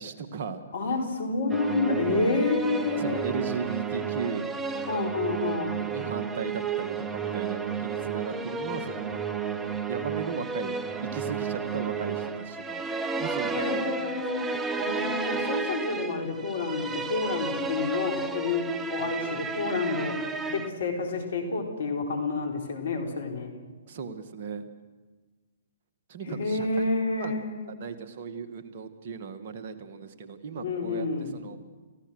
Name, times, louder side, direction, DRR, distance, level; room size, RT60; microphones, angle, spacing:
voice 1, 0.0-0.6 3.0-4.6 4.9-5.2 5.9-9.2 9.9-10.8 11.1-12.8 13.2-14.1 23.9-24.7 26.1-26.8 27.2-31.6, right 5 dB, 50° right, 8 dB, 1.8 m, -36 dB
voice 2, 0.7-3.3 4.9-5.8 13.5-14.4 14.8-23.6 26.3-27.8 30.5-31.4, left 3 dB, 65° left, 3 dB, 4.4 m, -29 dB
sound 1, 1.5-20.7, right 5 dB, 15° right, 1.1 m, -32 dB
29.5 x 15.0 x 6.4 m, 1.4 s
figure-of-eight pair, 125°, 0 cm